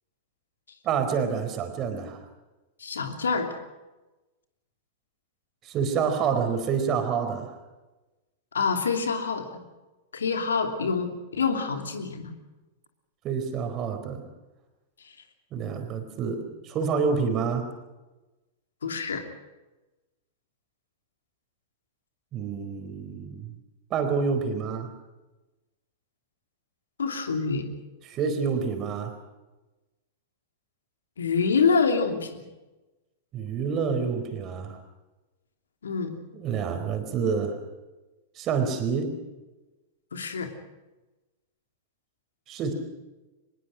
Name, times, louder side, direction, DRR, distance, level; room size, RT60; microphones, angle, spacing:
voice 1, 0.8-2.2 5.6-7.5 13.2-14.2 15.5-17.7 22.3-23.5 23.9-24.9 28.0-29.2 33.3-34.8 36.3-37.6 38.3-39.2 42.5-42.7, right 6 dB, 35° right, 6 dB, 4.5 m, -28 dB
voice 2, 2.8-3.6 8.5-9.5 10.1-12.3 18.8-19.2 27.0-27.6 31.2-32.3 35.8-36.1 40.1-40.5, left 5 dB, 70° left, 5 dB, 3.0 m, -26 dB
23.5 x 21.5 x 6.4 m, 1.1 s
figure-of-eight pair, 95°, 0 cm